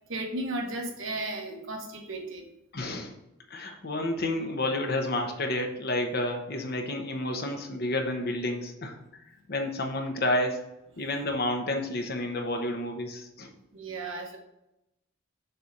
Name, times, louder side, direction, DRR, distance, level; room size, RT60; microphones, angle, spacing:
voice 1, 0.1-2.5 3.5-3.7 13.7-14.4, right 2 dB, 65° right, 2 dB, 1.2 m, -35 dB
voice 2, 2.7-3.1 3.5-9.0 9.5-10.6 11.0-13.5, left 1 dB, 50° left, 4 dB, 1.0 m, -30 dB
6.8 x 3.5 x 5.8 m, 0.89 s
head